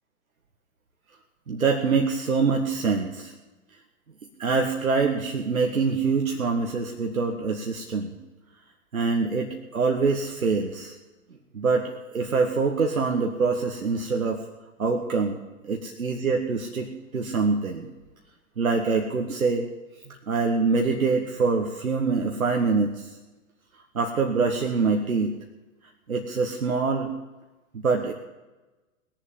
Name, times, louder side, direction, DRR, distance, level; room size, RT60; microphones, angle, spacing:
voice 1, 1.5-3.3 4.4-8.1 8.9-10.9 11.5-14.4 14.8-15.4 15.6-17.9 18.6-19.6 20.1-23.2 23.9-25.3 26.1-27.1 27.7-28.1, right 4 dB, 90° right, 2 dB, 1.6 m, -25 dB
19.5 x 7.4 x 7.4 m, 1.1 s
hypercardioid pair, 120°, 41 cm